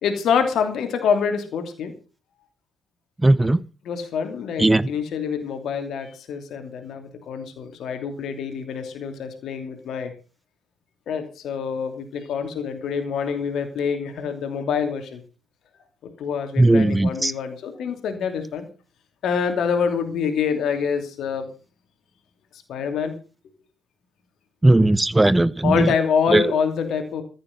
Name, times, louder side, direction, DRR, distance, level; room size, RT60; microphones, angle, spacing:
voice 1, 0.0-1.9 3.8-10.1 11.1-15.2 16.0-18.7 19.2-21.5 22.7-23.1 25.6-27.2, left 6 dB, 55° left, 6 dB, 2.9 m, -26 dB
voice 2, 3.2-3.6 4.6-4.9 16.6-17.3 24.6-25.9 26.3-26.4, right 2 dB, 15° right, 19 dB, 0.7 m, -17 dB
14.5 x 8.6 x 6.5 m, 0.35 s
figure-of-eight pair, 45°, 0 cm